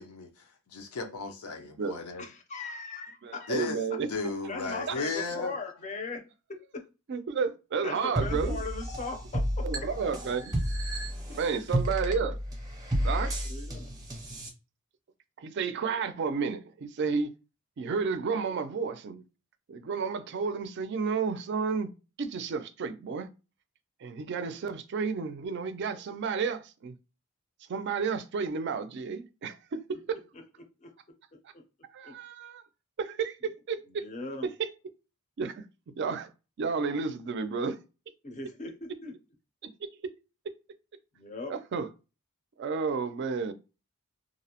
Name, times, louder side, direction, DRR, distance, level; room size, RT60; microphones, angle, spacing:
voice 1, 0.0-2.2 3.5-3.8 4.1-5.6, left 3 dB, 85° left, 0.6 m, -35 dB
voice 2, 2.2-3.7 4.5-6.2 6.5-6.8 7.8-9.9 11.3-11.6 13.5-13.9 30.8-30.9 31.5-31.6 32.0-32.1 33.9-34.5 38.2-39.1 41.1-41.6, left 3 dB, 35° left, 0.5 m, -39 dB
voice 3, 3.2-4.1 4.9-5.0 7.1-8.6 9.6-10.5 11.3-12.4 13.0-13.3 15.4-17.3 17.8-19.2 19.7-21.9 22.2-23.3 24.0-26.9 27.7-30.2 31.9-32.6 33.0-34.1 34.4-34.7 35.4-35.6 36.0-36.3 36.6-37.8 41.5-41.9 42.6-43.5, right 5 dB, 55° right, 0.4 m, -31 dB
sound 1, 8.2-14.5, equal, 15° right, 0.6 m, -32 dB
2.4 x 2.0 x 2.8 m
head